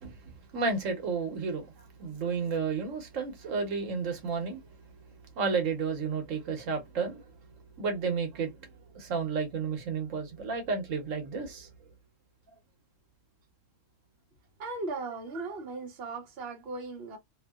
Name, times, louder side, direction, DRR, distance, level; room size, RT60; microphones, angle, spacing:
voice 1, 0.0-4.7 5.3-7.3 7.8-11.7, right 5 dB, 75° right, 1.2 m, -32 dB
voice 2, 14.6-17.2, right 3 dB, 55° right, 1.1 m, -37 dB
2.8 x 2.6 x 2.2 m
omnidirectional pair, 1.3 m